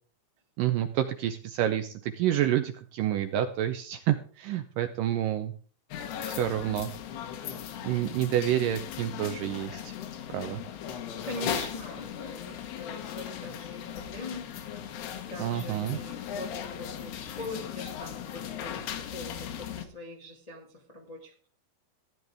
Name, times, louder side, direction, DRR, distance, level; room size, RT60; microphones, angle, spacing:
voice 1, 0.6-5.5 6.2-6.9 7.8-9.9 10.3-10.6 15.4-16.0, right 12 dB, 75° right, 8 dB, 2.0 m, -28 dB
sound 1, 5.9-19.9, left 9 dB, 85° left, 3.3 m, -38 dB
voice 2, 11.2-14.5 15.1-21.5, left 2 dB, 20° left, 0 dB, 0.9 m, -42 dB
15.0 x 11.0 x 3.5 m, 0.43 s
omnidirectional pair, 4.5 m